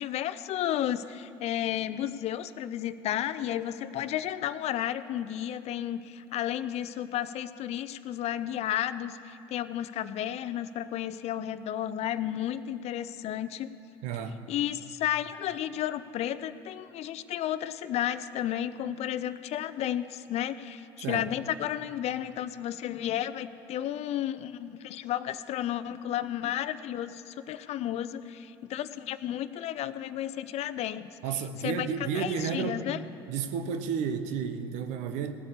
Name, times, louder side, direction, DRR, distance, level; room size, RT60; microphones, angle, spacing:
voice 1, 0.0-13.7 14.5-31.1 31.6-33.0, left 11 dB, 55° left, 14 dB, 0.6 m, -32 dB
voice 2, 14.0-14.4 21.0-21.3 31.2-32.8 33.3-35.3, right 7 dB, 65° right, 9 dB, 1.0 m, -32 dB
18.0 x 8.3 x 6.7 m, 2.6 s
hypercardioid pair, 60°, 13 cm